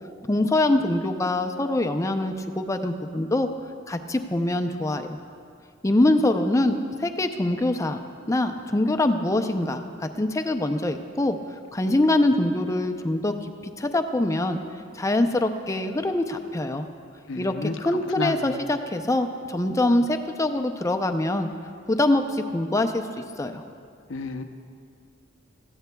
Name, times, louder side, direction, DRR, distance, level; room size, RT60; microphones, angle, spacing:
voice 1, 0.3-3.5 3.9-5.2 5.8-8.0 8.3-11.4 11.7-13.3 13.6-14.6 14.9-16.9 17.4-21.5 21.9-23.0 23.4-23.6, left 1 dB, 15° left, 7 dB, 0.5 m, -24 dB
voice 2, 17.3-17.8 18.2-18.6 24.1-24.4, left 3 dB, 80° left, 7 dB, 0.7 m, -30 dB
18.5 x 14.5 x 2.3 m, 2.3 s
head